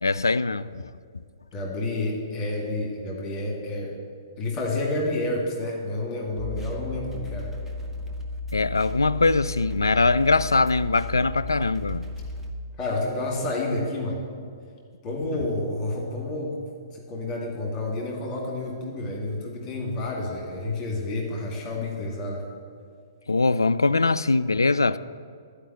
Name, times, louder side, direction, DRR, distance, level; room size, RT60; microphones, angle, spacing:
voice 1, 0.0-1.2 8.5-12.1 23.3-25.0, left 3 dB, 75° left, 0.3 m, -22 dB
voice 2, 1.5-3.9 4.4-7.5 12.8-14.2 15.0-16.6 17.1-22.4, left 2 dB, 25° left, 2.2 m, -29 dB
sound 1, 6.4-12.5, left 2 dB, 5° right, 1.0 m, -34 dB
11.5 x 5.1 x 8.0 m
figure-of-eight pair, 120°, 2 cm